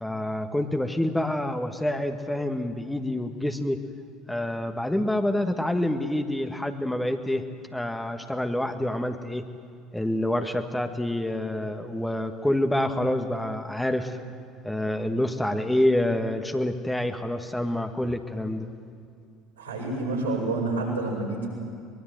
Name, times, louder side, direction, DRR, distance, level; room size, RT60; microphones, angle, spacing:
voice 1, 0.0-3.8 4.3-7.4 7.7-9.4 9.9-14.2 14.6-18.7, left 1 dB, 5° left, 6 dB, 1.7 m, -27 dB
voice 2, 19.6-21.5, right 2 dB, 85° right, -4 dB, 6.7 m, -28 dB
24.0 x 22.0 x 7.9 m, 2.3 s
figure-of-eight pair, 60°, 0 cm